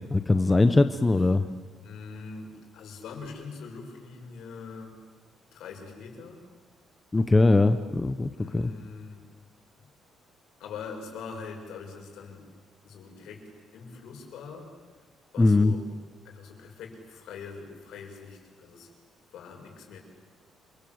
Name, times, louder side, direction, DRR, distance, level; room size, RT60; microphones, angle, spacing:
voice 1, 0.1-1.4 7.1-8.7 15.4-15.7, left 2 dB, 15° left, 8 dB, 0.8 m, -21 dB
voice 2, 1.8-4.9 5.5-6.4 8.3-9.2 9.7-9.9 10.6-12.4 12.8-13.4 13.7-14.7 15.3-16.0 16.2-18.9 19.3-20.0, left 5 dB, 70° left, 2 dB, 6.7 m, -43 dB
28.0 x 25.5 x 7.9 m, 1.5 s
cardioid pair, 170°, 0 cm